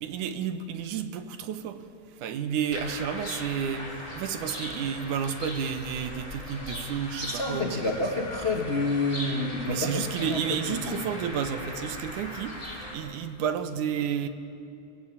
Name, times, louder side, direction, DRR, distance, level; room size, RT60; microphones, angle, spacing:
voice 1, 0.0-1.9 2.2-7.8 9.7-14.3, right 8 dB, 85° right, 9 dB, 2.5 m, -31 dB
sound 1, 2.7-12.9, left 1 dB, 10° left, 3.8 m, -39 dB
voice 2, 7.2-11.1, left 2 dB, 40° left, 1 dB, 0.9 m, -29 dB
24.0 x 17.5 x 8.7 m, 2.7 s
omnidirectional pair, 3.5 m